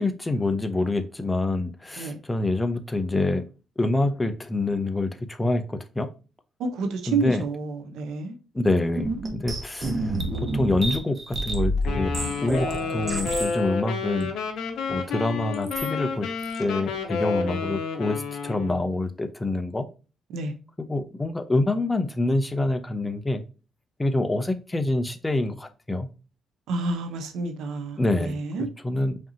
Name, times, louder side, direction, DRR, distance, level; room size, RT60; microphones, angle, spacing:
voice 1, 0.0-3.4 3.8-6.1 7.1-7.4 8.5-10.2 10.5-12.1 12.4-14.3 14.9-16.3 16.6-19.9 20.8-23.4 24.0-26.1 28.0-28.4 28.8-29.2, left 2 dB, 15° left, 0.6 m, -26 dB
voice 2, 6.6-8.4 20.3-20.5 26.7-28.7, right 3 dB, 85° right, 0.8 m, -29 dB
sound 1, 8.9-13.6 14.2-14.3 15.5-15.9 16.4-16.7, right 1 dB, 35° right, 1.1 m, -29 dB
Wind instrument woodwind instrument, 11.8-18.8, left 5 dB, 75° left, 0.8 m, -30 dB
5.1 x 2.8 x 2.7 m
cardioid pair, 90°, 0 cm